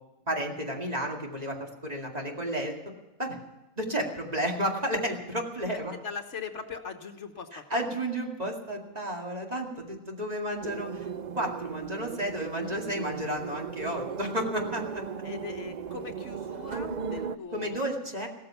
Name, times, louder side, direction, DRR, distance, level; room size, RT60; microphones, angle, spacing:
voice 1, 0.3-2.8 3.2-3.4 3.8-5.9 7.5-15.0 17.5-18.3, right 1 dB, 30° right, 0 dB, 2.3 m, -32 dB
voice 2, 5.9-7.8 15.2-17.8, left 6 dB, 65° left, 6 dB, 1.5 m, -40 dB
sound 1, 10.6-17.4, right 6 dB, 55° right, 0.5 m, -37 dB
16.5 x 13.5 x 5.7 m, 1.1 s
omnidirectional pair, 1.4 m